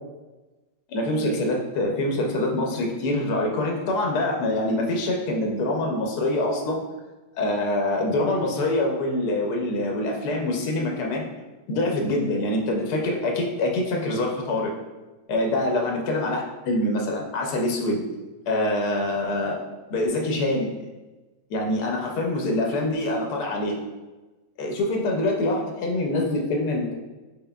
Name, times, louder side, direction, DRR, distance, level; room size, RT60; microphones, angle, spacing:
voice 1, 0.9-6.8 7.3-11.3 11.7-14.7 15.3-18.0 18.5-19.6 19.9-20.7 21.5-23.8 24.6-26.9, left 1 dB, 85° left, 0 dB, 1.2 m, -25 dB
5.6 x 3.8 x 2.3 m, 1.2 s
omnidirectional pair, 1.6 m